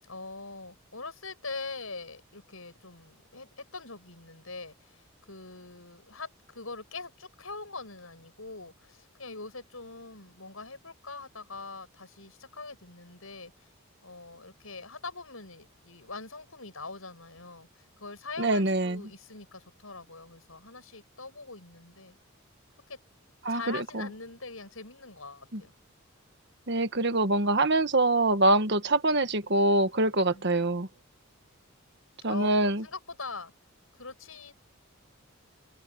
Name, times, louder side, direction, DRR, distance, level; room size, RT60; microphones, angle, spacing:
voice 1, 0.0-13.7 14.0-22.2 22.9-23.0 23.5-25.7 30.3-30.9 32.3-33.5 34.0-34.5, left 3 dB, 75° left, 8.0 m, -43 dB
voice 2, 18.4-19.0 23.4-24.1 25.5-25.6 26.7-30.9 32.2-32.8, right 2 dB, 55° right, 1.5 m, -25 dB
head